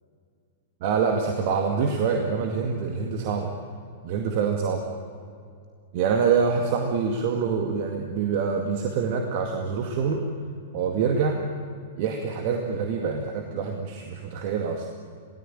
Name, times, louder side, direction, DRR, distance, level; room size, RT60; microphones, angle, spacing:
voice 1, 0.8-3.5 4.0-4.8 5.9-10.2 10.7-11.4 12.0-14.9, right 5 dB, 45° right, 3 dB, 2.1 m, -25 dB
28.0 x 18.0 x 9.0 m, 2.3 s
figure-of-eight pair, 105°, 0 cm